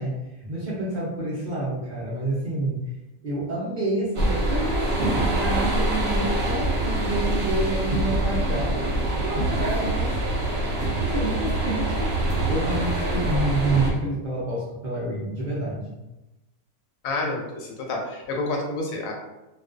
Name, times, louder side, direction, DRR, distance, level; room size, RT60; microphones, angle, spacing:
voice 1, 0.0-2.8 3.2-10.1 11.0-12.1 12.5-16.0, right 2 dB, 75° right, -8 dB, 0.4 m, -28 dB
sound 1, 4.1-13.9, right 1 dB, 55° right, 0.8 m, -24 dB
voice 2, 17.0-19.1, left 2 dB, 75° left, 0 dB, 1.0 m, -29 dB
2.4 x 2.2 x 2.3 m, 0.97 s
omnidirectional pair, 1.6 m